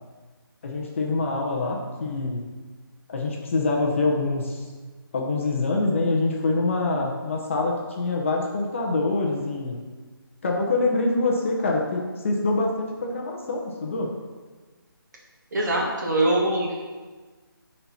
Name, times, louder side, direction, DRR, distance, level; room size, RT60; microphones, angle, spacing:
voice 1, 0.6-2.4 3.1-4.6 5.1-9.8 10.4-14.1, left 3 dB, 35° left, 0 dB, 0.9 m, -25 dB
voice 2, 15.5-17.0, right 1 dB, 50° right, -2 dB, 1.9 m, -23 dB
9.7 x 4.4 x 4.2 m, 1.3 s
figure-of-eight pair, 165°, 12 cm